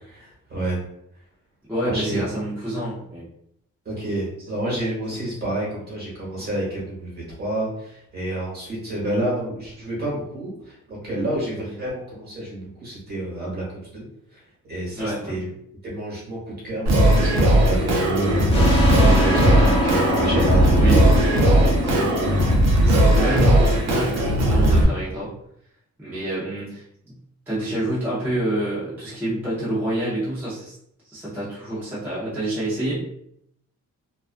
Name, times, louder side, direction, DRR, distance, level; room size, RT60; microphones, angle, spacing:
voice 1, 0.2-0.8 1.8-2.3 3.8-14.0 14.3-14.4 14.7-15.5 15.8-21.1 22.7-23.1, right 1 dB, 30° right, -6 dB, 1.1 m, -29 dB
voice 2, 1.7-3.3 4.7-4.8 6.4-6.5 15.0-15.4 20.7-21.1 23.1-25.3 26.0-27.2 27.5-30.8 31.0-33.0, right 1 dB, 5° right, -10 dB, 0.5 m, -27 dB
Singing, 16.9-24.8, right 1 dB, 60° right, 0.6 m, -17 dB
sound 1, 18.5-23.8, equal, 20° left, 1.1 m, -25 dB
2.3 x 2.3 x 2.4 m, 0.75 s
cardioid pair, 170°, 31 cm